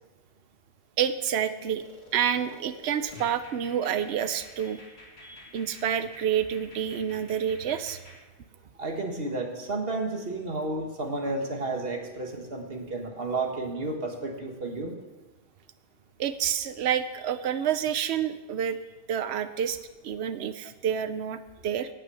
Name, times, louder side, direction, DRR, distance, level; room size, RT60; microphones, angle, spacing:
voice 1, 1.0-1.8 2.1-4.8 5.5-8.0 16.2-18.8 19.1-19.8 20.0-21.9, right 9 dB, 80° right, 11 dB, 0.9 m, -28 dB
sound 1, 1.8-8.2, left 2 dB, 75° left, 2.6 m, -50 dB
voice 2, 8.8-15.0, right 2 dB, 65° right, 3 dB, 1.8 m, -32 dB
17.5 x 6.3 x 7.0 m, 1.2 s
omnidirectional pair, 1.1 m